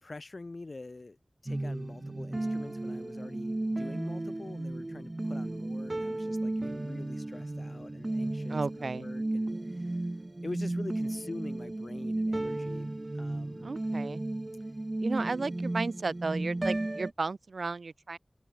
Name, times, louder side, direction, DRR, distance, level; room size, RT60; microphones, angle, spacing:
voice 1, 0.0-1.2 1.4-10.1 10.4-13.7, left 3 dB, 60° left, 2.6 m, -45 dB
sound 1, 1.5-17.1, right 2 dB, 35° right, 2.6 m, -34 dB
voice 2, 8.5-9.1 13.6-14.2 15.0-18.2, right 3 dB, 90° right, 0.7 m, -34 dB
wide cardioid pair, 65°, 0 cm